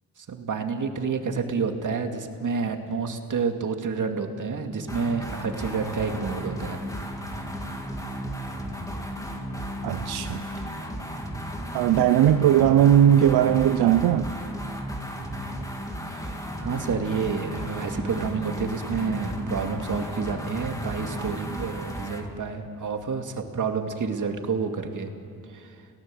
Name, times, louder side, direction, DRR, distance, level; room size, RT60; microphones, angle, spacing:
voice 1, 0.2-6.9 16.2-25.1 25.5-25.7, right 5 dB, 55° right, 5 dB, 2.4 m, -29 dB
sound 1, 4.9-22.3, equal, 10° left, 3.1 m, -34 dB
voice 2, 9.8-10.4 11.7-14.3 21.2-21.3, right 10 dB, 90° right, 10 dB, 0.7 m, -19 dB
30.0 x 17.5 x 7.8 m, 2.5 s
cardioid pair, 75°, 37 cm